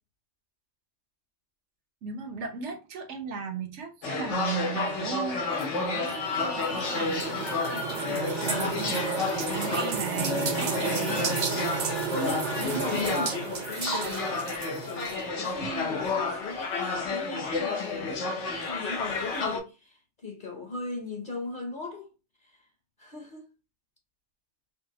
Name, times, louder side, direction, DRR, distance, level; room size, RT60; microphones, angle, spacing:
voice 1, 2.0-5.5 5.7-11.3, right 6 dB, 85° right, 1.1 m, -37 dB
sound 1, 4.0-19.6, left 3 dB, 90° left, 1.2 m, -31 dB
sound 2, 5.6-15.2, right 5 dB, 50° right, 0.6 m, -32 dB
voice 2, 11.0-11.5 12.1-22.1 22.4-22.6 23.0-23.5, left 3 dB, 50° left, 0.8 m, -37 dB
5.0 x 2.0 x 2.7 m
omnidirectional pair, 1.2 m